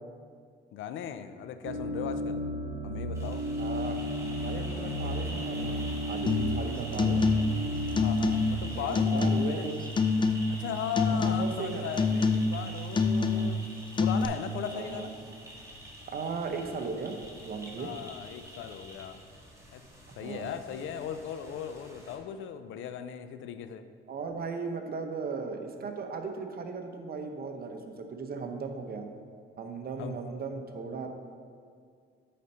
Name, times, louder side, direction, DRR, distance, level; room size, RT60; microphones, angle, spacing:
voice 1, 0.7-2.4 2.8-3.5 8.0-9.7 10.5-13.6 14.0-15.2 17.8-19.2 19.7-19.8 20.2-23.8 30.0-30.2, left 8 dB, 80° left, 10 dB, 0.5 m, -38 dB
sound 1, 1.6-8.7, equal, 80° right, 1.0 m, -33 dB
sound 2, 3.1-22.2, right 1 dB, 15° right, 1.8 m, -46 dB
voice 2, 3.6-4.0 4.4-5.8 6.1-7.2 8.6-9.9 11.1-11.9 13.1-13.5 14.7-15.3 16.1-17.2 17.4-17.9 20.2-20.5 24.1-29.1 29.6-31.1, right 4 dB, 50° right, 5 dB, 0.9 m, -37 dB
sound 3, 6.3-6.6 6.9-7.6 7.9-8.6 9.0-9.6 10.0-10.7 11.0-11.6 12.0-12.6 12.9-13.6 14.0-14.3, left 4 dB, 25° left, 0.5 m, -26 dB
8.4 x 4.3 x 5.4 m, 2.1 s
cardioid pair, 90°, 20 cm